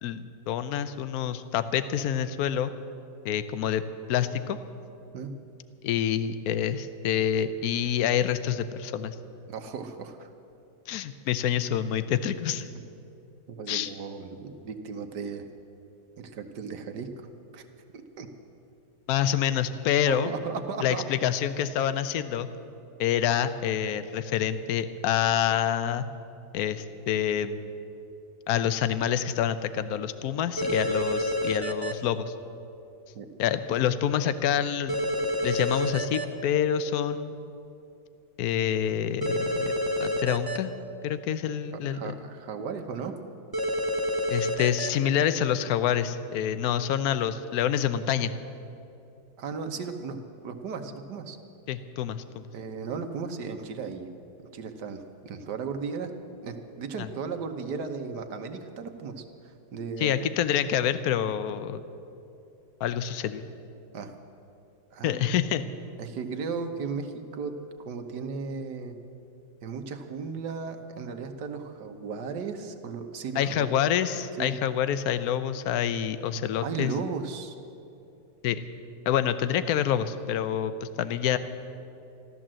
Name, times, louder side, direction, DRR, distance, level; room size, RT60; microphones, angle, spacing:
voice 1, 0.0-2.7 3.2-4.6 5.8-9.1 10.9-12.7 13.7-13.9 19.1-20.3 20.8-22.5 23.0-26.1 26.5-27.7 28.5-32.3 33.4-35.0 35.4-37.5 38.4-40.7 41.0-42.2 44.3-48.3 51.7-52.5 57.0-57.1 60.0-61.8 62.8-63.4 65.0-65.6 73.4-76.9 78.4-78.6 79.1-81.4, left 9 dB, 65° left, 12 dB, 1.1 m, -27 dB
voice 2, 9.5-10.3 13.5-15.5 16.2-17.6 18.2-18.3 20.1-21.0 33.1-33.3 41.9-43.1 49.4-51.4 52.5-54.1 54.5-56.1 56.4-60.2 63.9-64.1 64.9-65.2 66.0-67.5 67.8-68.9 69.6-73.7 74.4-74.6 76.6-77.5, right 5 dB, 70° right, 6 dB, 1.5 m, -36 dB
sound 1, 30.6-31.9 34.9-36.2 39.2-40.6 43.5-44.9, equal, 20° right, 0.7 m, -28 dB
14.0 x 13.0 x 7.5 m, 2.7 s
omnidirectional pair, 1.9 m